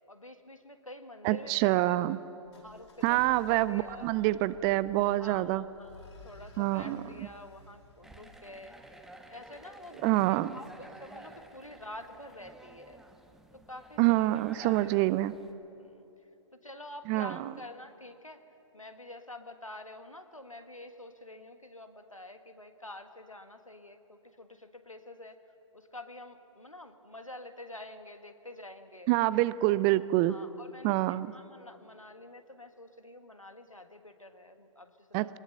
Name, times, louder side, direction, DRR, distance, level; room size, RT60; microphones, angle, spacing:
voice 1, 0.1-2.0 2.6-4.1 5.2-8.8 9.2-13.0 13.5-15.0 15.8-16.1 16.5-18.4 18.7-25.4 25.7-29.1 30.3-35.4, left 1 dB, 90° left, 7 dB, 1.6 m, -48 dB
voice 2, 1.2-2.2 3.0-5.6 6.6-7.0 10.0-10.6 14.0-15.3 17.1-17.4 29.1-30.4 30.8-31.3 35.1-35.4, right 17 dB, 20° right, 17 dB, 0.4 m, -26 dB
sound 1, 2.4-9.3, left 2 dB, 65° left, 5.1 m, -54 dB
sound 2, 8.0-15.5, right 1 dB, 5° right, 1.1 m, -52 dB
23.0 x 20.0 x 6.8 m, 2.9 s
figure-of-eight pair, 120°, 17 cm